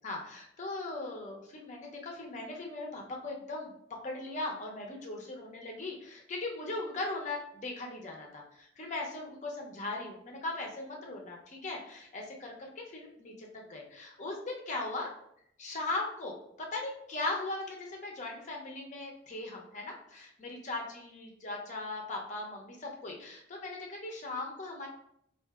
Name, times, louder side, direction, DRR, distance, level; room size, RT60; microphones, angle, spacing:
voice 1, 0.0-15.1 15.6-24.9, left 2 dB, 40° left, 0 dB, 0.6 m, -39 dB
4.6 x 2.4 x 2.3 m, 0.73 s
head